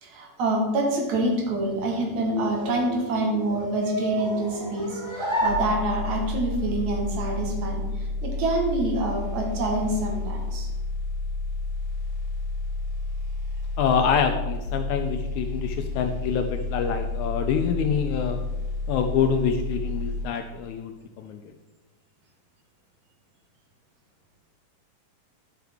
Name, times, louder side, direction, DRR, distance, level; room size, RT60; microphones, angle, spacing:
voice 1, 0.0-10.7, right 2 dB, 70° right, 1 dB, 2.5 m, -27 dB
sound 1, 1.4-6.3, right 1 dB, 10° right, 2.1 m, -31 dB
sound 2, 5.5-20.2, left 3 dB, 45° right, 2.9 m, -30 dB
voice 2, 13.8-18.4 18.9-21.5, left 7 dB, 80° left, 5 dB, 1.8 m, -26 dB
11.0 x 5.7 x 3.5 m, 1.1 s
omnidirectional pair, 3.7 m